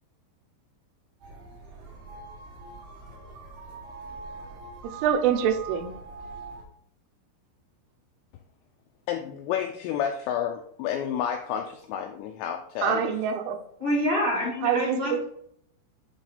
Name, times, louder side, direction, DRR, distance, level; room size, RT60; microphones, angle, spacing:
sound 1, 1.2-6.6, right 4 dB, 60° right, 2.6 m, -42 dB
voice 1, 4.8-5.9 12.8-13.6 14.6-15.2, right 8 dB, 85° right, 7 dB, 3.2 m, -25 dB
voice 2, 9.1-13.1, left 9 dB, 90° left, 5 dB, 2.5 m, -30 dB
voice 3, 13.8-15.2, equal, 15° right, -6 dB, 1.7 m, -26 dB
9.7 x 3.5 x 4.1 m, 0.68 s
omnidirectional pair, 5.6 m